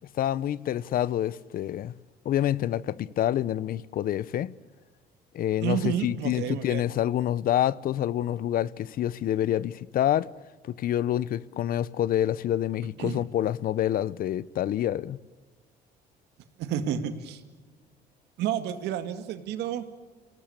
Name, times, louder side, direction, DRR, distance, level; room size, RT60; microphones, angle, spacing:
voice 1, 0.2-1.9 2.2-4.5 5.3-10.3 10.6-15.2, left 11 dB, 60° left, 0.8 m, -27 dB
voice 2, 5.6-6.8 13.0-13.2 16.6-17.4 18.4-19.8, right 10 dB, 85° right, 2.2 m, -30 dB
28.5 x 18.5 x 8.5 m
cardioid pair, 110°, 17 cm